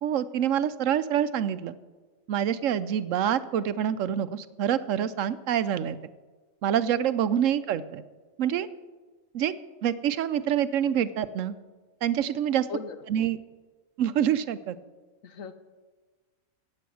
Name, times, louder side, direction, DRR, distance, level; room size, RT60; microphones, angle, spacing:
voice 1, 0.0-1.8 2.3-6.0 6.6-8.0 8.4-8.7 9.3-9.5 9.8-11.5 12.0-12.7 13.1-13.4 14.0-14.8, right 9 dB, 70° right, 14 dB, 0.9 m, -26 dB
voice 2, 12.7-13.0 15.2-15.5, left 5 dB, 75° left, 10 dB, 1.3 m, -37 dB
15.0 x 8.6 x 6.3 m, 1.3 s
omnidirectional pair, 1.4 m